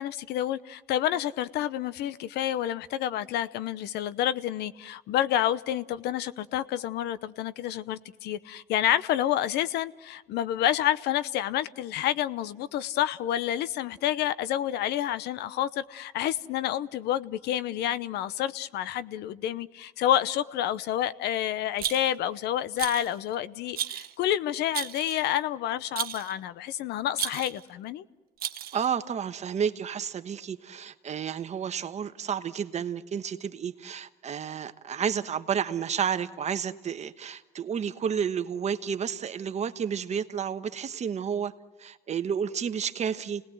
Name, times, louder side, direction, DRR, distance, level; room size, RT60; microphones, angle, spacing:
voice 1, 0.0-28.0, left 12 dB, 80° left, 0.9 m, -29 dB
Rattle, 21.8-22.3 22.8-23.2 23.7-24.1 24.7-25.3 26.0-26.3 27.1-27.6 28.4-28.9, right 11 dB, 60° right, 1.1 m, -34 dB
voice 2, 28.7-41.5 41.8-43.4, right 7 dB, 40° right, 1.2 m, -31 dB
29.5 x 19.0 x 7.8 m
cardioid pair, 110°, 17 cm